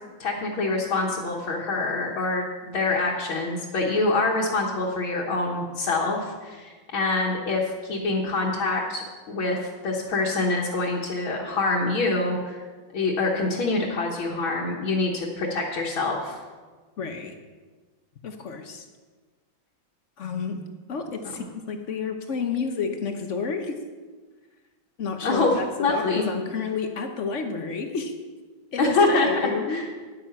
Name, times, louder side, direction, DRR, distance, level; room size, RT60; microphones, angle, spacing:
voice 1, 0.2-9.6 9.8-12.6 12.9-16.4 25.2-26.2 28.8-29.8, left 3 dB, 75° left, -4 dB, 2.0 m, -25 dB
voice 2, 17.0-17.4 18.2-18.9 20.2-20.6 20.9-23.7 25.0-28.1 28.7-29.9, left 5 dB, 55° left, 6 dB, 0.8 m, -30 dB
10.5 x 9.0 x 5.8 m, 1.4 s
omnidirectional pair, 2.2 m